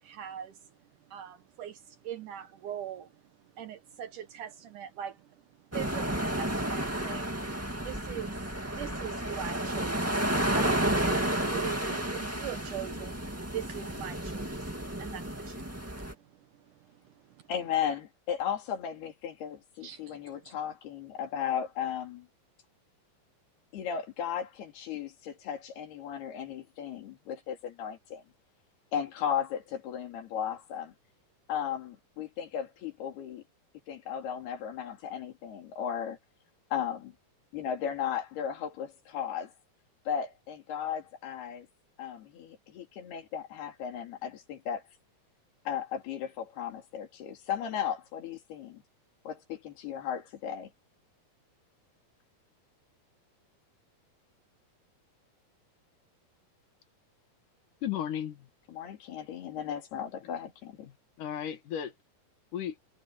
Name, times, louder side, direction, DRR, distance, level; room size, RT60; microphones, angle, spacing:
voice 1, 0.0-7.4 7.8-17.5 19.8-20.6, right 10 dB, 70° right, 2.1 m, -43 dB
sound 1, 5.7-16.1, right 1 dB, 10° right, 0.7 m, -31 dB
voice 2, 17.5-22.3 23.7-28.2 28.9-30.9 31.5-33.4 33.9-36.2 36.7-37.1 37.5-39.5 40.1-41.7 42.0-44.8 45.7-48.8 49.2-50.7 58.7-60.9, left 8 dB, 85° left, 4.8 m, -35 dB
voice 3, 57.8-58.5 60.9-61.9 62.5-62.8, left 10 dB, 60° left, 2.7 m, -35 dB
omnidirectional pair, 4.5 m